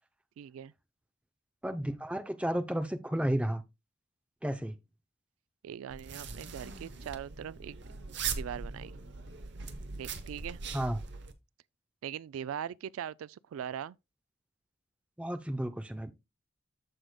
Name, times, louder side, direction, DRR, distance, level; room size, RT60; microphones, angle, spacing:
voice 1, 0.4-0.7 5.6-7.8 8.3-8.9 10.0-10.6 12.0-14.0, right 9 dB, 85° right, 0.3 m, -40 dB
voice 2, 1.6-3.6 4.4-4.7 10.7-11.0 15.2-16.1, right 1 dB, 5° right, 0.5 m, -32 dB
sound 1, 5.9-11.3, right 5 dB, 55° right, 0.8 m, -40 dB
14.0 x 4.9 x 2.2 m
head